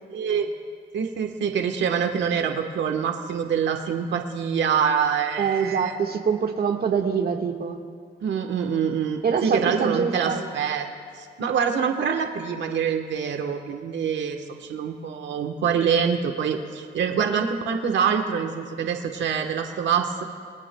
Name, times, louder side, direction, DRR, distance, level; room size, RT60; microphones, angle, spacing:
voice 1, 0.1-0.5 0.9-6.0 8.2-10.9 11.2-20.2, right 7 dB, 65° right, 4 dB, 1.2 m, -25 dB
voice 2, 5.4-7.8 9.2-10.4, right 6 dB, 50° right, 3 dB, 1.6 m, -24 dB
28.5 x 20.0 x 2.3 m, 2.1 s
cardioid pair, 90°, 20 cm